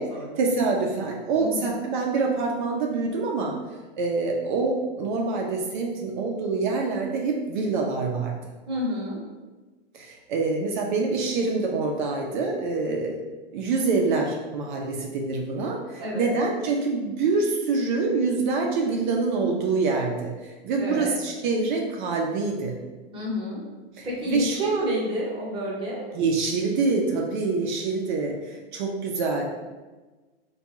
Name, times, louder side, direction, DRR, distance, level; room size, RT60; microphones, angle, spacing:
voice 1, 0.4-3.6 4.0-8.3 9.9-13.2 13.5-22.8 24.0-25.0 26.1-29.4, right 4 dB, 50° right, 0 dB, 0.5 m, -26 dB
voice 2, 1.4-1.7 8.7-9.2 16.0-16.4 20.8-21.1 23.1-23.6 24.0-26.1, equal, 15° right, -5 dB, 0.9 m, -30 dB
3.4 x 2.3 x 2.9 m, 1.2 s
supercardioid pair, 150°, 31 cm